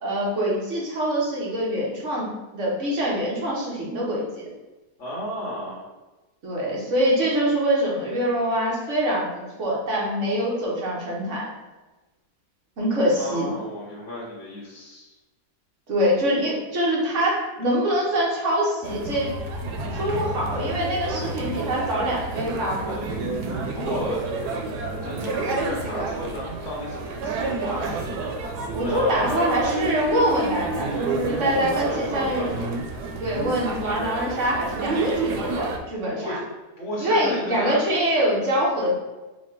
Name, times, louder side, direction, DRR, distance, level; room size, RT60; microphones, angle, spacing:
voice 1, 0.0-4.5 6.4-11.5 12.8-13.5 15.9-19.3 19.9-23.0 28.7-32.5 33.2-36.4 37.0-38.9, equal, 55° right, -4 dB, 1.4 m, -24 dB
voice 2, 5.0-5.9 13.2-15.1 23.7-24.3 25.0-28.0 28.8-29.9 30.9-32.7 36.1-36.4 36.8-37.9, left 1 dB, 55° left, -5 dB, 1.1 m, -33 dB
sound 1, 18.8-35.8, right 3 dB, 90° right, 1.2 m, -29 dB
4.1 x 2.3 x 4.4 m, 1.1 s
omnidirectional pair, 1.7 m